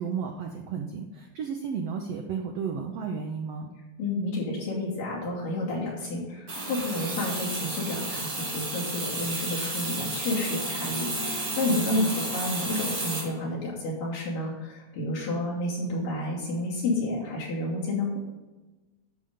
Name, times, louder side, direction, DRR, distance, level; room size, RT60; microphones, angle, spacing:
voice 1, 0.0-3.7 11.7-12.1, right 6 dB, 80° right, 2 dB, 1.4 m, -33 dB
voice 2, 4.0-18.2, left 2 dB, 90° left, -5 dB, 4.4 m, -30 dB
sound 1, 6.5-13.2, right 2 dB, 40° right, 4.1 m, -32 dB
11.0 x 6.7 x 3.7 m, 1.2 s
omnidirectional pair, 3.8 m